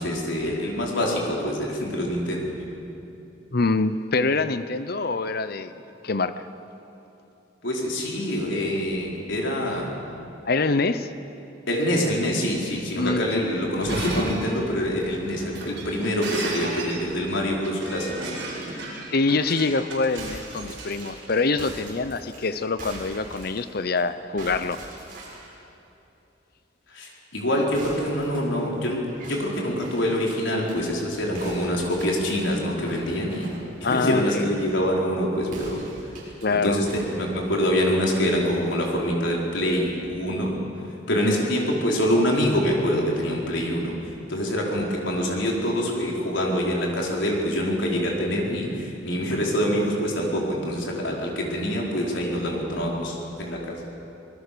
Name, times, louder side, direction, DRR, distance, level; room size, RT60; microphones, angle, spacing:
voice 1, 0.0-2.5 7.6-9.9 11.7-18.3 26.9-33.5 33.8-35.8 36.5-40.5 41.1-44.0 44.3-53.8, equal, 90° left, -1 dB, 4.6 m, -25 dB
voice 2, 3.5-6.5 10.5-11.1 12.9-13.4 19.1-24.8 33.8-34.4 36.4-36.8 41.2-41.4, left 3 dB, 55° left, 12 dB, 0.8 m, -25 dB
Shatter, 13.7-21.7, right 2 dB, 70° right, 5.8 m, -35 dB
sound 1, 20.1-24.0 24.4-25.5 27.7-30.8 31.3-34.2 35.4-36.5 36.8-38.7, right 1 dB, 50° right, 7.1 m, -42 dB
25.5 x 20.5 x 6.9 m, 2.9 s
head